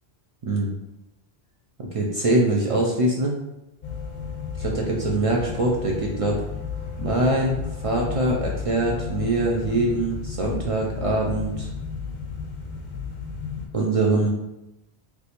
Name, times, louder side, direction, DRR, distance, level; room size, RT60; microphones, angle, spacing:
voice 1, 1.9-3.3 4.6-6.4 7.0-11.7 13.7-14.3, right 2 dB, 65° right, -2 dB, 0.3 m, -23 dB
sound 1, 3.8-13.7, left 6 dB, 55° left, 0.6 m, -33 dB
3.4 x 2.5 x 2.8 m, 0.94 s
omnidirectional pair, 1.1 m